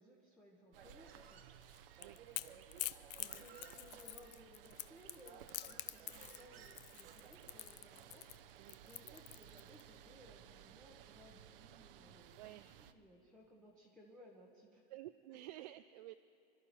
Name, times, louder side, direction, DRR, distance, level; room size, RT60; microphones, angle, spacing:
voice 1, 0.0-1.6 3.2-8.3 8.8-14.8, equal, ahead, -4 dB, 1.2 m, -62 dB
sound 1, 0.7-12.9, right 10 dB, 65° right, 0.9 m, -59 dB
Human voice, 0.7-7.8, right 7 dB, 80° right, 1.7 m, -61 dB
Crackle / Crack, 1.6-9.8, left 16 dB, 45° left, 0.4 m, -47 dB
voice 2, 2.0-2.7 3.3-3.4 8.6-9.2 12.4-12.7 14.9-16.2, right 15 dB, 45° right, 9 dB, 0.4 m, -53 dB
25.0 x 12.5 x 4.4 m, 2.8 s
supercardioid pair, 155°, 30 cm